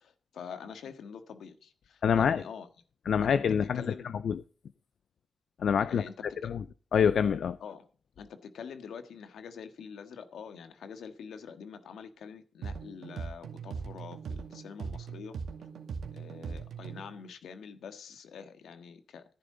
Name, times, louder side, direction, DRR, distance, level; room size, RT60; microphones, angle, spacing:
voice 1, 0.0-2.7 3.2-3.3 3.7-4.1 5.9-6.5 7.6-7.9 8.2-15.4 16.1-19.2, left 6 dB, 85° left, 1.7 m, -45 dB
voice 2, 2.0-2.4 3.1-3.8 4.2-4.4 5.6-6.0 6.5-6.6 6.9-7.6, left 7 dB, 65° left, 0.5 m, -25 dB
sound 1, 12.6-17.1, right 5 dB, 75° right, 2.2 m, -40 dB
13.5 x 11.0 x 3.9 m
wide cardioid pair, 150°, 0 cm